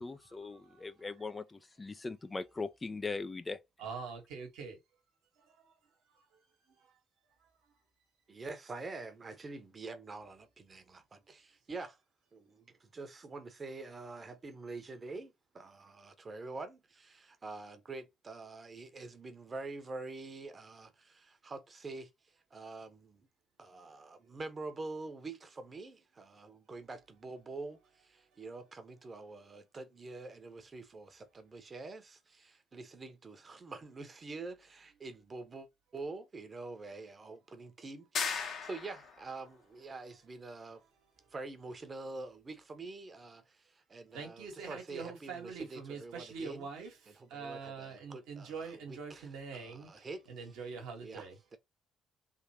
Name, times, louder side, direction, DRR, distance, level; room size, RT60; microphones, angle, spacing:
voice 1, 0.0-3.6, left 3 dB, 25° left, 0.5 m, -40 dB
voice 2, 0.5-1.4 3.8-4.8 44.1-51.4, right 5 dB, 65° right, 1.4 m, -44 dB
voice 3, 8.3-12.0 12.3-22.1 22.5-23.3 23.6-35.7 35.9-40.8 41.3-46.7 47.2-50.3 51.0-51.3 51.5-51.6, right 3 dB, 35° right, 1.1 m, -46 dB
sound 1, 38.2-39.2, left 6 dB, 55° left, 1.3 m, -36 dB
3.6 x 3.1 x 2.9 m
figure-of-eight pair, 45°, 0 cm